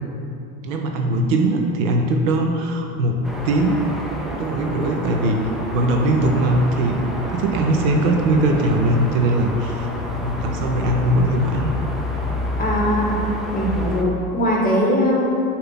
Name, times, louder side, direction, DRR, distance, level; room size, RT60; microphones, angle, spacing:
voice 1, 0.6-3.2 3.4-3.8 4.4-5.4 5.7-7.0 7.3-9.9 10.2-11.7, right 1 dB, 60° right, 2 dB, 0.8 m, -20 dB
sound 1, 3.2-14.0, equal, ahead, 0.4 m, -28 dB
voice 2, 12.6-13.2 13.5-15.2, equal, 20° left, -3 dB, 1.4 m, -20 dB
6.6 x 2.9 x 5.6 m, 2.7 s
hypercardioid pair, 90°, 45 cm